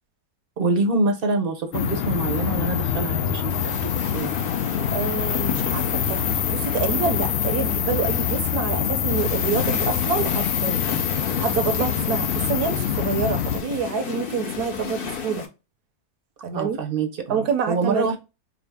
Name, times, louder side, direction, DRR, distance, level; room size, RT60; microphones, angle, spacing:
voice 1, 0.6-4.4 16.5-18.2, right 3 dB, 50° right, 0.7 m, -26 dB
sound 1, 1.7-13.6, left 8 dB, 85° left, 0.5 m, -25 dB
sound 2, 3.5-15.5, left 7 dB, 50° left, 0.7 m, -33 dB
voice 2, 4.9-10.8 11.4-15.5 16.4-16.8 17.3-18.2, right 6 dB, 80° right, 1.3 m, -27 dB
sound 3, 9.1-12.4, left 5 dB, 70° left, 1.4 m, -45 dB
5.0 x 2.0 x 3.4 m
omnidirectional pair, 1.6 m